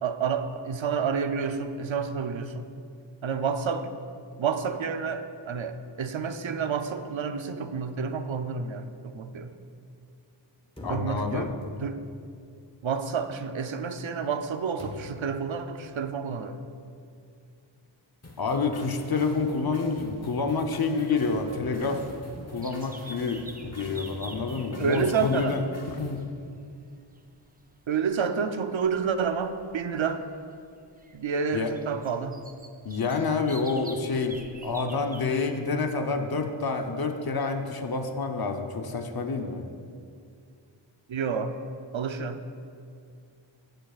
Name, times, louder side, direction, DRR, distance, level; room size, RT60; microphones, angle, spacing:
voice 1, 0.0-2.7 3.2-3.9 4.4-9.5 10.9-12.0 12.8-16.6 24.8-25.6 27.9-30.3 31.1-32.4 41.1-41.6 41.9-42.4, right 6 dB, 75° right, 9 dB, 0.6 m, -29 dB
voice 2, 10.8-11.5 18.4-22.0 22.5-25.6 25.9-26.2 31.5-31.7 32.8-34.4 34.6-39.6, left 4 dB, 50° left, 4 dB, 0.8 m, -28 dB
sound 1, 10.8-12.2 14.8-15.4, left 1 dB, 10° left, 1.3 m, -41 dB
sound 2, 18.2-26.2, left 1 dB, 30° left, 1.1 m, -45 dB
sound 3, 22.6-35.4, right 2 dB, 20° right, 0.5 m, -48 dB
15.5 x 7.9 x 2.4 m, 2.3 s
wide cardioid pair, 55°, 47 cm